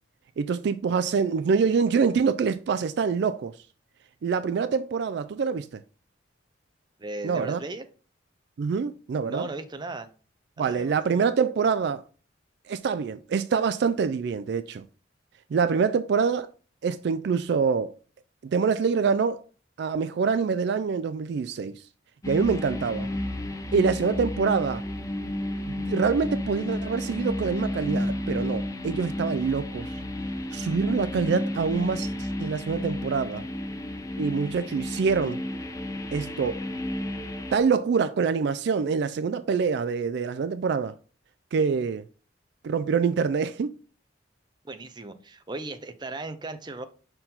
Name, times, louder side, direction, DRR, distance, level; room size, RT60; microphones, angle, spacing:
voice 1, 0.4-3.5 4.2-5.8 7.2-7.6 8.6-9.5 10.6-12.0 12.7-14.8 15.5-16.5 16.8-18.0 18.4-19.4 19.8-21.8 22.3-23.1 23.7-24.8 25.7-29.9 30.5-33.4 34.2-35.4 36.1-36.6 37.5-41.0 41.5-42.1 42.6-43.7, right 5 dB, 60° right, 0.3 m, -25 dB
voice 2, 7.0-7.8 9.2-10.1 10.6-11.3 44.6-46.9, right 2 dB, 25° right, 0.6 m, -37 dB
sound 1, 22.2-37.6, left 1 dB, 15° left, 0.6 m, -32 dB
5.6 x 4.5 x 3.8 m
head